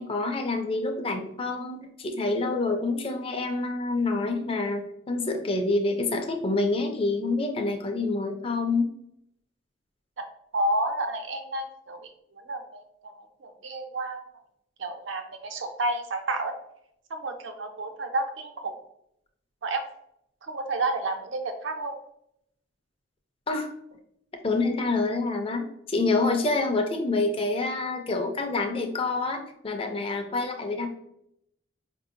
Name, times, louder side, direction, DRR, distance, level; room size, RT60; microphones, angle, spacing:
voice 1, 0.0-8.9 23.5-23.7 24.4-30.9, left 3 dB, 30° left, 4 dB, 0.4 m, -27 dB
voice 2, 10.5-14.2 14.8-16.6 17.1-18.8 19.6-19.8 20.4-21.9, right 2 dB, 70° right, 5 dB, 0.6 m, -31 dB
4.8 x 2.7 x 2.5 m, 0.76 s
head